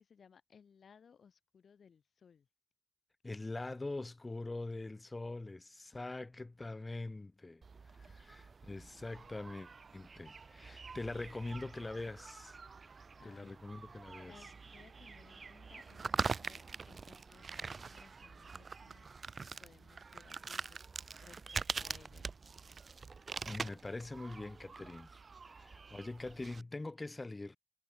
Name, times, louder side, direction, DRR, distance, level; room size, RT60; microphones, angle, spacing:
voice 1, 0.0-2.5 7.9-8.2 9.3-9.4 12.8-13.6 14.2-20.9 21.2-22.3 22.7-22.8, left 6 dB, 45° left, 7.0 m, -62 dB
voice 2, 3.2-7.6 8.0-12.6 13.2-14.3 23.4-25.2 25.5-27.6, left 2 dB, 15° left, 1.4 m, -43 dB
Tree bark crackle and snap gore, 7.6-26.6, right 4 dB, 35° right, 0.4 m, -44 dB
cardioid pair, 90°, 0 cm